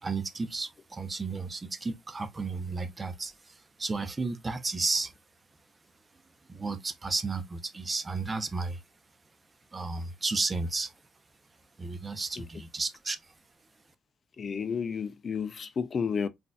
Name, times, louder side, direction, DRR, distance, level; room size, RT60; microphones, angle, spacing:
voice 1, 0.0-5.1 6.5-8.8 9.7-10.9 11.8-13.2, right 3 dB, 25° right, 0.6 m, -33 dB
voice 2, 14.4-16.3, left 6 dB, 45° left, 0.4 m, -31 dB
3.9 x 2.6 x 2.2 m
cardioid pair, 90°, 0 cm